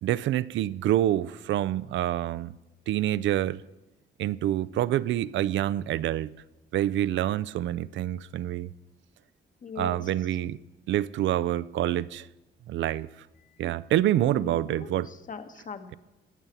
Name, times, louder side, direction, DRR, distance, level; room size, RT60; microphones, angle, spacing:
voice 1, 0.0-2.5 2.9-3.6 4.2-6.3 6.7-8.7 9.8-10.6 10.9-12.3 12.7-13.1 13.6-15.1, right 13 dB, 70° right, 0.4 m, -27 dB
voice 2, 9.6-10.0 14.1-16.0, left 5 dB, 40° left, 1.2 m, -40 dB
15.0 x 5.7 x 9.4 m
cardioid pair, 90°, 20 cm